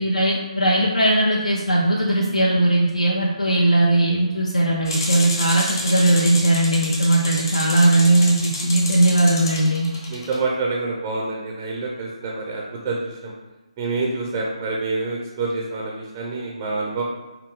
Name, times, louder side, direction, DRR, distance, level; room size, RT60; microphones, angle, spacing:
voice 1, 0.0-9.9, right 1 dB, 75° left, -2 dB, 0.6 m, -19 dB
sound 1, 4.9-10.4, left 2 dB, 30° left, 0.8 m, -30 dB
voice 2, 10.1-13.3 13.8-17.0, right 3 dB, 20° right, -2 dB, 0.4 m, -27 dB
4.6 x 2.3 x 3.5 m, 1.2 s
figure-of-eight pair, 145°, 4 cm